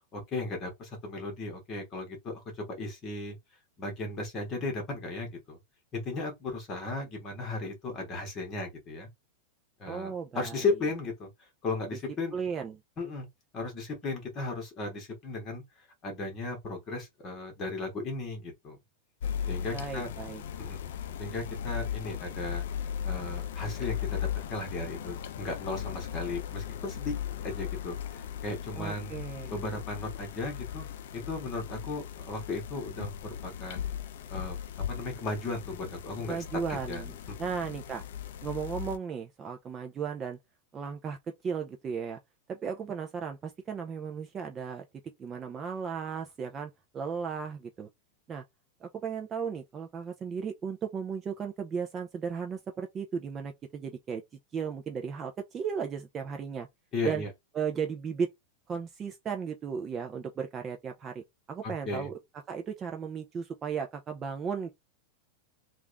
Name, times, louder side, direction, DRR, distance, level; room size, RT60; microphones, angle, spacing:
voice 1, 0.1-3.4 3.8-5.6 5.9-9.1 9.8-11.3 11.6-12.3 13.0-13.3 13.5-15.6 16.0-18.8 19.5-20.1 20.6-20.8 21.2-22.6 23.0-27.1 27.4-29.1 29.5-30.9 31.1-34.0 34.3-34.6 34.9-36.4 36.7-37.0 56.9-57.3 61.8-62.1, left 3 dB, 25° left, 1.5 m, -36 dB
voice 2, 9.9-10.6 12.3-12.8 19.7-20.4 28.8-29.5 36.2-37.1 37.4-38.0 38.4-40.4 40.7-42.2 42.5-44.8 45.2-47.9 48.3-48.4 48.8-54.2 54.5-56.7 57.0-57.2 57.5-58.3 58.7-62.1 62.5-64.7, right 6 dB, 20° right, 0.4 m, -35 dB
sound 1, 19.2-39.0, left 9 dB, 70° left, 0.5 m, -37 dB
3.4 x 2.4 x 3.3 m
supercardioid pair, 165°, 0 cm